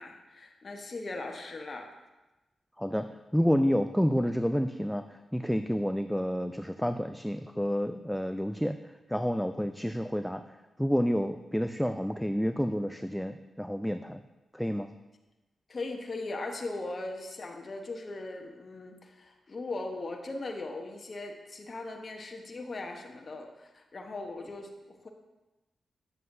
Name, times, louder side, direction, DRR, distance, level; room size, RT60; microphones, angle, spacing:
voice 1, 0.0-1.9 15.7-25.1, left 2 dB, 50° left, 2 dB, 1.1 m, -39 dB
voice 2, 3.3-5.0 5.3-8.8 9.1-10.4 10.8-14.2 14.5-14.9, equal, ahead, 8 dB, 0.4 m, -29 dB
9.6 x 7.5 x 2.7 m, 1.1 s
supercardioid pair, 45°, 0 cm